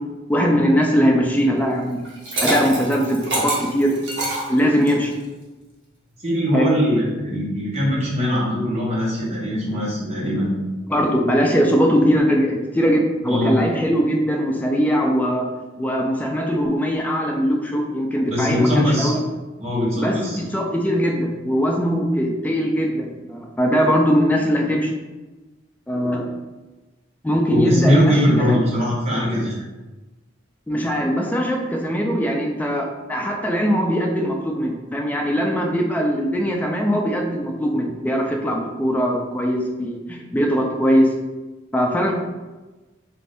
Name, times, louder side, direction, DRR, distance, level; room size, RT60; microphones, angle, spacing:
voice 1, 0.3-2.0 2.4-3.9 4.5-5.1 6.5-6.7 10.9-15.5 15.8-19.2 20.0-24.9 25.9-26.3 27.2-28.6 30.7-41.1 41.7-42.1, equal, 10° left, 1 dB, 0.3 m, -21 dB
Liquid, 2.0-5.1, right 1 dB, 65° right, 0.9 m, -25 dB
voice 2, 6.2-10.6 13.3-13.6 18.2-19.1 19.6-20.4 27.5-29.5, equal, 35° right, -7 dB, 0.9 m, -21 dB
2.6 x 2.5 x 3.3 m, 1.2 s
head